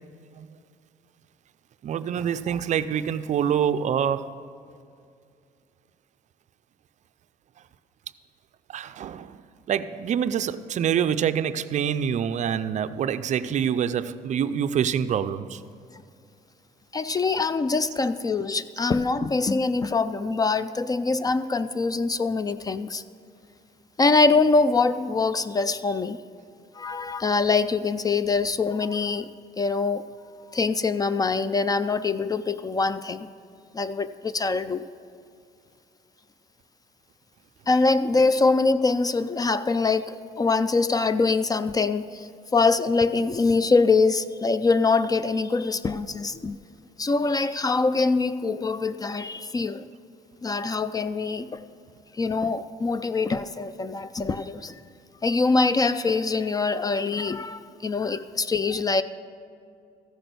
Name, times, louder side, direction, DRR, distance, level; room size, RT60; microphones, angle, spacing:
voice 1, 1.8-4.3 8.7-9.4 9.7-15.6, right 8 dB, 45° right, 0.4 m, -26 dB
voice 2, 16.9-23.0 24.0-26.2 26.8-29.3 29.6-30.0 30.5-33.3 33.7-34.8 37.7-46.6 47.0-49.9 50.4-51.6 52.2-54.7 55.2-59.0, left 4 dB, 20° left, 0.3 m, -24 dB
14.5 x 6.0 x 6.8 m
cardioid pair, 110°, 17 cm